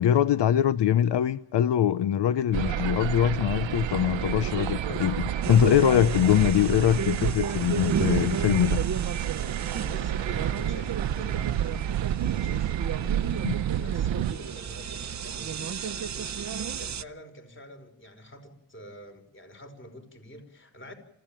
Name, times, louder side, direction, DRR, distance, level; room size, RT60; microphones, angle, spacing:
voice 1, 0.0-8.8 13.4-13.6, left 10 dB, 70° left, 14 dB, 0.8 m, -23 dB
sound 1, 2.5-14.3, right 11 dB, 90° right, 1.0 m, -30 dB
sound 2, 5.4-17.0, right 7 dB, 40° right, 0.8 m, -33 dB
voice 2, 9.7-11.9 12.1-20.9, equal, 25° left, 6 dB, 5.5 m, -47 dB
26.5 x 15.5 x 9.1 m, 0.81 s
cardioid pair, 100°, 43 cm